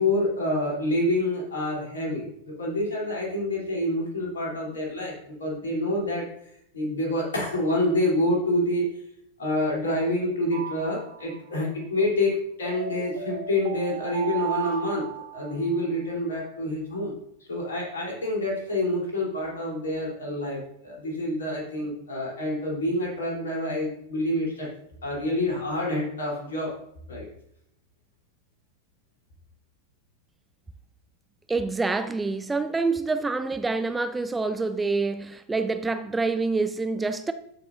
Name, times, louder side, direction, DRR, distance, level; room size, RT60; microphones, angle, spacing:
voice 1, 0.0-6.2 6.7-9.0 9.4-15.1 15.3-17.1 17.5-24.7 25.0-26.7 27.1-27.3, left 1 dB, 65° left, 3.4 m, -27 dB
sound 1, 10.5-11.6 12.7-15.9, right 9 dB, 55° right, 1.3 m, -36 dB
voice 2, 31.5-37.3, right 3 dB, 10° right, 0.4 m, -26 dB
13.5 x 5.8 x 2.6 m
figure-of-eight pair, 90°, 0 cm